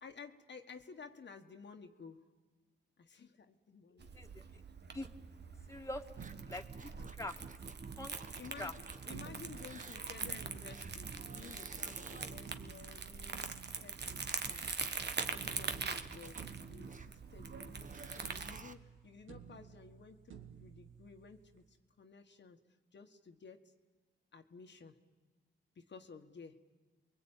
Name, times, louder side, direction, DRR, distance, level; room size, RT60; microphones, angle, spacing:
voice 1, 0.0-2.2 3.0-4.1 8.4-8.7 9.0-13.5 13.8-14.7 15.0-16.4 16.7-22.6 22.9-23.7 24.3-25.0 25.7-26.6, left 5 dB, 65° left, 4 dB, 1.6 m, -54 dB
Crumpling crinkling, 4.0-18.6, right 5 dB, 60° right, 1.4 m, -43 dB
voice 2, 5.7-6.9 7.2-7.3 8.0-8.1 8.6-8.7, left 1 dB, 15° left, 3 dB, 2.0 m, -43 dB
sound 1, 6.2-9.1 9.4-12.7 14.0-18.7 19.4-19.5, right 4 dB, 40° right, 1.3 m, -51 dB
sound 2, 6.2-7.7 9.1-11.7 12.5-15.0 15.4-18.0 18.2-21.7, right 7 dB, 85° right, 1.9 m, -55 dB
29.0 x 22.0 x 9.0 m, 1.3 s
cardioid pair, 75°, 19 cm